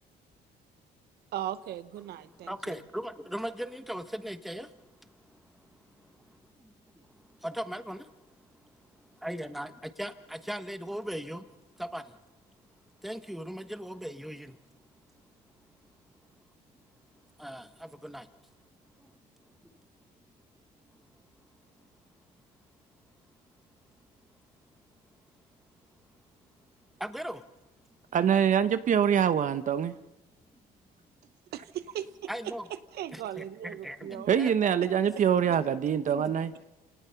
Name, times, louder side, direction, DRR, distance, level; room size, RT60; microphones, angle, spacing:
voice 1, 1.3-2.7 31.5-34.3, right 11 dB, 70° right, 13 dB, 1.0 m, -38 dB
voice 2, 2.2-6.3 6.6-6.7 7.1-8.4 9.0-12.2 13.0-14.6 17.4-18.3 19.0-19.1 19.6-19.7 27.0-27.5 32.3-32.6 33.1-34.7 36.1-36.2, equal, ahead, 10 dB, 1.2 m, -39 dB
voice 3, 28.1-29.9 34.3-36.5, right 8 dB, 50° right, 12 dB, 0.9 m, -24 dB
27.0 x 18.5 x 5.8 m, 1.1 s
cardioid pair, 110°, 17 cm